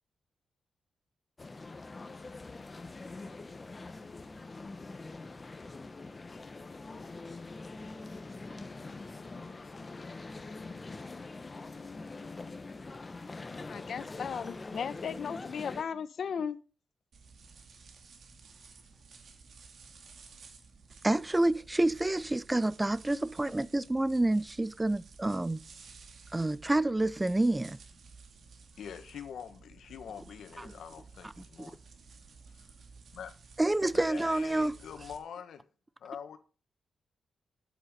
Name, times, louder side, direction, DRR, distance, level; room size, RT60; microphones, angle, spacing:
Evening at Stephansplatz in Vienna Austria, 1.4-15.8, left 3 dB, 30° left, 1.2 m, -44 dB
voice 1, 13.6-16.6, left 7 dB, 65° left, 0.9 m, -36 dB
sound 1, 17.1-35.2, right 4 dB, 65° right, 2.2 m, -54 dB
voice 2, 21.0-25.6 26.3-27.8 30.6-30.7 33.6-34.8, right 2 dB, 15° right, 0.5 m, -28 dB
voice 3, 28.7-31.8 32.5-32.7 33.1-33.3 33.9-35.6 36.0-36.4, left 8 dB, 85° left, 1.5 m, -44 dB
9.4 x 8.0 x 5.2 m
cardioid pair, 105°, 0 cm